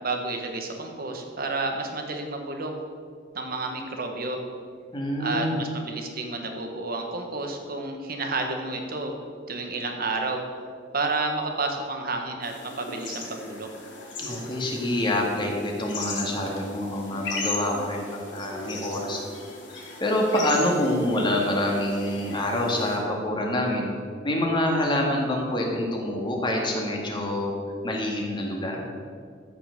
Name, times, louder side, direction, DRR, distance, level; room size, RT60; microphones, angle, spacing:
voice 1, 0.0-2.7 3.3-4.4 5.2-9.1 9.5-10.4 10.9-13.7, right 3 dB, 55° right, 3 dB, 1.6 m, -30 dB
voice 2, 4.9-5.6 14.2-18.0 18.3-19.2 19.7-23.9 24.2-27.5 27.8-28.8, left 1 dB, 25° left, -1 dB, 2.1 m, -26 dB
sound 1, 12.4-23.0, left 3 dB, 80° left, 2.5 m, -37 dB
14.0 x 5.9 x 6.8 m, 2.1 s
head